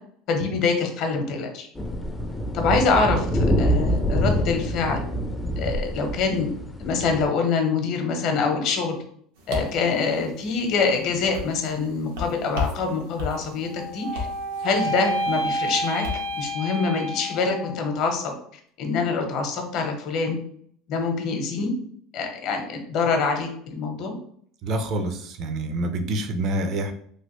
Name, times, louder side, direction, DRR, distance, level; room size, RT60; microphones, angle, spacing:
voice 1, 0.3-1.7 2.5-5.1 5.6-6.5 6.8-9.0 9.5-14.3 14.6-16.0 16.3-18.3 18.8-20.4 20.9-21.7 22.1-24.1, left 4 dB, 55° left, 4 dB, 0.7 m, -25 dB
sound 1, 1.7-7.3, equal, 10° left, 0.4 m, -25 dB
sound 2, 9.3-16.5, left 3 dB, 90° right, 0.9 m, -36 dB
sound 3, 13.6-17.9, equal, 70° right, 1.3 m, -29 dB
voice 2, 24.6-26.9, right 2 dB, 45° right, 7 dB, 0.5 m, -27 dB
3.1 x 2.5 x 3.0 m, 0.62 s
supercardioid pair, 130°, 0 cm